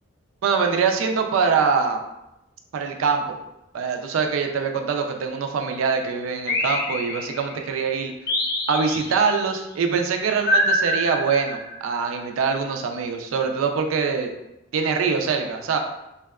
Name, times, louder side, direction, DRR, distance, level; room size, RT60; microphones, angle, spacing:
voice 1, 0.4-2.0 2.7-3.4 3.7-8.1 8.7-14.3 14.7-15.8, right 5 dB, 90° right, 5 dB, 0.3 m, -23 dB
sound 1, 6.5-7.6 8.3-9.4 10.5-11.9, left 1 dB, 50° left, 0.4 m, -25 dB
2.7 x 2.2 x 2.2 m, 0.89 s
head